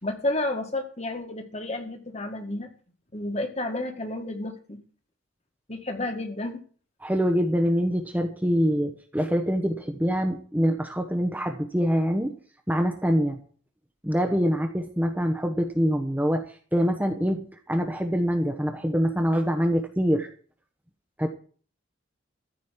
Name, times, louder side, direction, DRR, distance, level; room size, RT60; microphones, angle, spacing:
voice 1, 0.0-2.7 3.1-4.8 5.7-6.6, left 2 dB, 30° left, 6 dB, 1.8 m, -31 dB
voice 2, 7.0-12.3 12.7-13.4 14.0-20.3 21.2-21.3, equal, 10° right, 5 dB, 1.0 m, -25 dB
14.0 x 5.3 x 9.2 m, 0.43 s
head